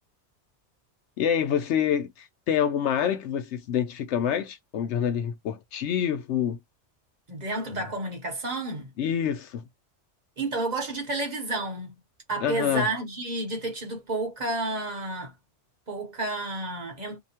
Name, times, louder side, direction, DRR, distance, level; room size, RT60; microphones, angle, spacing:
voice 1, 1.2-6.6 9.0-9.6 12.4-12.9, left 9 dB, 75° left, 0.9 m, -27 dB
voice 2, 7.3-8.9 10.4-11.9 12.3-15.3 15.9-17.2, right 2 dB, 40° right, 1.0 m, -31 dB
2.8 x 2.2 x 2.8 m
omnidirectional pair, 1.2 m